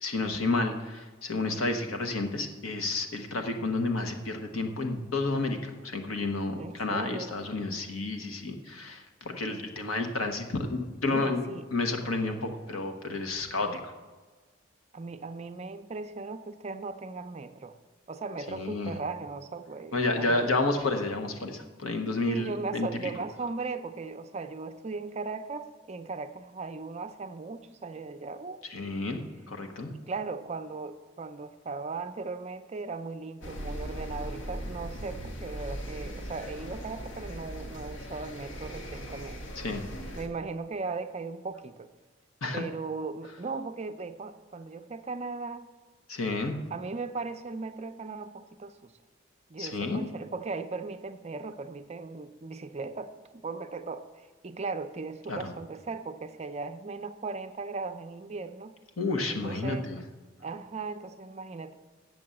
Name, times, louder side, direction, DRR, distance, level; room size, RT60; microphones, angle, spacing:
voice 1, 0.0-11.4 11.7-13.9 18.5-18.9 19.9-22.9 28.7-29.2 29.5-29.9 39.6-39.9 42.4-42.6 46.1-46.5 49.6-50.0 55.3-55.5 59.0-60.0, left 3 dB, 90° left, 5 dB, 1.2 m, -30 dB
voice 2, 6.6-7.3 11.1-11.7 14.9-17.8 18.1-20.6 22.3-28.6 29.9-39.4 40.2-41.9 42.5-45.7 46.7-48.9 49.5-58.7 59.3-59.9 60.4-61.8, right 4 dB, 30° right, 9 dB, 0.5 m, -37 dB
sound 1, 33.4-40.3, equal, 60° left, 1.2 m, -39 dB
7.7 x 7.0 x 7.6 m, 1.3 s
head